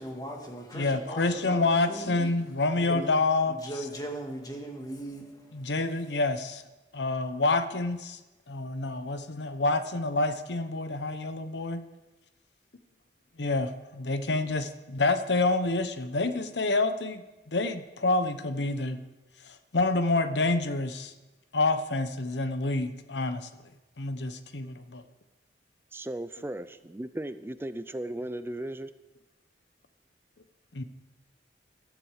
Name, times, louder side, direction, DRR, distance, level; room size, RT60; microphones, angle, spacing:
voice 1, 0.0-2.3 2.8-3.2 3.5-5.7, right 1 dB, 20° left, 2 dB, 2.0 m, -39 dB
voice 2, 0.7-3.6 5.5-6.6 6.9-8.2 8.5-11.8 13.4-19.0 19.7-21.1 21.5-23.5 24.0-25.0 30.7-30.8, left 2 dB, 75° left, 11 dB, 0.9 m, -28 dB
voice 3, 25.9-28.9, right 1 dB, 15° right, 12 dB, 0.4 m, -36 dB
14.5 x 12.5 x 4.9 m, 1.1 s
head